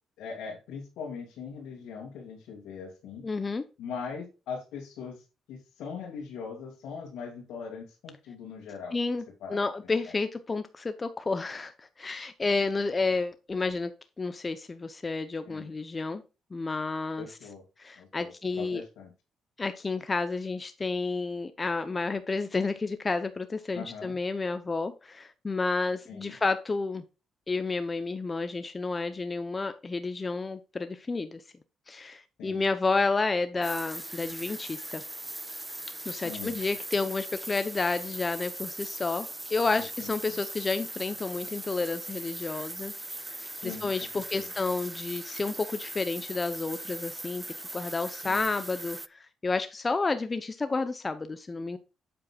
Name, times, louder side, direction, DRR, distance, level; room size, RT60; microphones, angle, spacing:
voice 1, 0.2-3.2 3.8-5.2 5.5-9.0 9.4-9.6 15.5-15.7 17.2-17.6 18.0-19.1 23.7-24.2 26.1-26.4 32.4-32.6 36.2-36.6 39.7-40.4 43.6-43.9 44.3-44.5 48.2-48.4, left 6 dB, 85° left, 2.3 m, -41 dB
voice 2, 3.2-3.6 8.9-9.2 9.5-13.9 14.2-16.2 16.5-17.3 17.8-18.8 19.6-27.0 27.5-31.4 31.9-35.0 36.1-42.9 43.3-47.4 47.7-51.8, left 3 dB, 25° left, 0.7 m, -30 dB
sound 1, 33.6-49.1, right 2 dB, 10° right, 0.4 m, -40 dB
9.2 x 7.8 x 2.4 m
cardioid pair, 90°, 0 cm